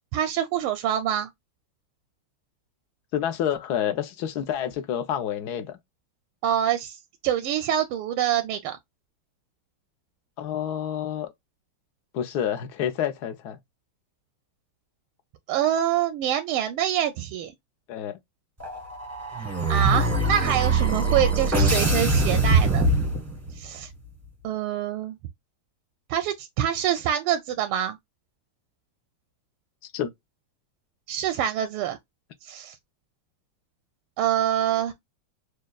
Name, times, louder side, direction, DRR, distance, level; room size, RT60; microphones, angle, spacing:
voice 1, 0.1-1.3 6.4-7.0 7.2-8.8 15.5-17.5 19.7-22.9 23.6-23.9 24.4-25.2 26.1-28.0 31.1-32.0 32.4-32.7 34.2-34.9, right 10 dB, 85° right, 1.5 m, -25 dB
voice 2, 3.1-5.8 10.4-11.3 12.1-13.6 17.9-18.2 29.9-30.1, left 9 dB, 65° left, 1.1 m, -28 dB
sound 1, 18.6-23.6, right 2 dB, 10° right, 0.7 m, -23 dB
6.3 x 2.3 x 2.3 m
omnidirectional pair, 2.4 m